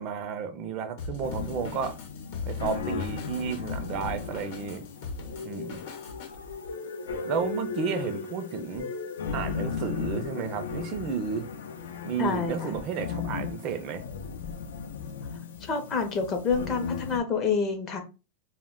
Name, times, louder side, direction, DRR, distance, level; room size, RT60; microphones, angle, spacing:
voice 1, 0.0-2.0 2.4-4.8 5.4-5.8 7.2-8.9 9.3-11.5 12.0-14.1, right 6 dB, 35° right, 0.4 m, -32 dB
Drum kit, 1.0-6.3, left 4 dB, 60° left, 0.8 m, -39 dB
sound 1, 1.2-17.2, left 5 dB, 85° left, 0.5 m, -36 dB
voice 2, 12.2-12.8 15.6-18.0, left 5 dB, 25° left, 0.5 m, -28 dB
2.1 x 2.1 x 3.5 m
supercardioid pair, 160°, 0 cm